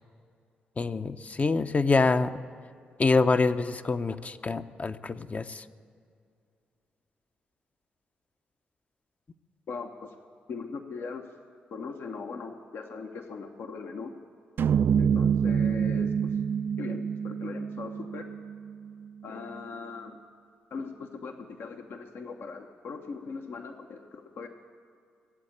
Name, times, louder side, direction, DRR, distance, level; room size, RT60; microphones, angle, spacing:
voice 1, 0.8-2.3 3.0-5.6, left 3 dB, 35° left, 10 dB, 0.7 m, -26 dB
voice 2, 9.7-10.1 10.5-11.3 11.7-14.1 15.0-16.3 16.8-18.3 19.2-20.2 20.7-24.5, left 4 dB, 65° left, 4 dB, 1.0 m, -39 dB
sound 1, 14.6-18.9, right 7 dB, 55° right, 0.3 m, -27 dB
19.0 x 7.9 x 8.8 m, 2.4 s
hypercardioid pair, 40°, 4 cm